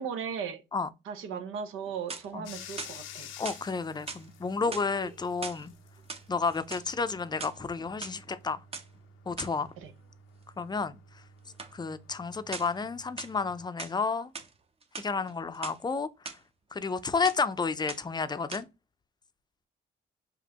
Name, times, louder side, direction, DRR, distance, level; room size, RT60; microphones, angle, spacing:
voice 1, 0.0-0.6 1.1-3.3 9.8-9.9, right 7 dB, 90° right, 0.8 m, -37 dB
sound 1, 1.8-2.4 2.8-3.6 4.1-4.3 4.6-5.6 6.0-6.9 7.3-8.1 8.7-8.9 9.4-9.6 11.6-11.8 12.5-12.8 13.2-14.0 14.3-14.5 14.8-15.8 16.3-16.4 16.7-17.0 17.2-17.5 17.9-18.2 18.5-18.6, right 4 dB, 30° right, 0.7 m, -41 dB
Bathtub (filling or washing), 2.4-13.6, left 5 dB, 80° left, 0.5 m, -51 dB
voice 2, 3.4-5.7 6.3-8.6 9.3-9.7 10.6-11.0 11.7-14.3 15.0-16.1 16.7-18.7, left 4 dB, 20° left, 0.5 m, -31 dB
5.2 x 2.6 x 2.8 m
cardioid pair, 90°, 20 cm